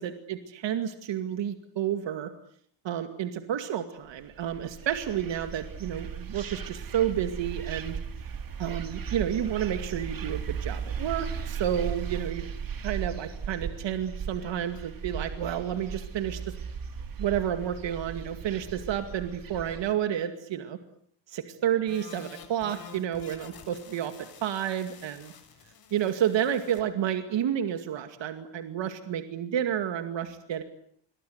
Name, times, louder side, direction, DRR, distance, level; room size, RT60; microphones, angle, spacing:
voice 1, 0.0-2.3 2.8-8.0 8.6-12.4 12.8-16.5 17.2-20.8 21.3-25.3 25.9-30.6, right 10 dB, 70° right, 8 dB, 2.4 m, -30 dB
sound 1, 4.2-19.9, right 7 dB, 45° right, 2.9 m, -37 dB
sound 2, 21.9-26.8, left 6 dB, 50° left, 6.6 m, -49 dB
28.0 x 24.0 x 8.1 m, 0.64 s
cardioid pair, 130°, 46 cm